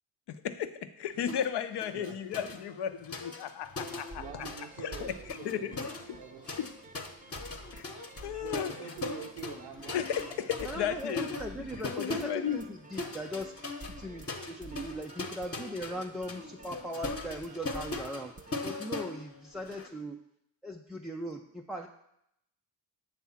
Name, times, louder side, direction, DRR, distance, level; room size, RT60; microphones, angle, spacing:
voice 1, 1.0-4.5 4.8-5.1 5.4-5.9 6.6-6.7 7.7-7.9 8.2-8.7 9.9-11.4 12.0-12.6, left 9 dB, 55° left, 10 dB, 0.7 m, -34 dB
sound 1, 1.3-1.5 1.8-4.7 4.9-19.9, left 2 dB, 30° left, 1.1 m, -40 dB
sound 2, 3.8-18.5, right 2 dB, 15° right, 0.7 m, -51 dB
voice 2, 4.1-6.5 8.4-10.9, right 7 dB, 85° right, 1 dB, 0.8 m, -46 dB
voice 3, 10.6-13.6 14.0-18.4 18.6-20.2 20.6-21.9, equal, ahead, 0 dB, 0.3 m, -39 dB
7.3 x 3.5 x 5.8 m, 0.78 s
supercardioid pair, 60°, 49 cm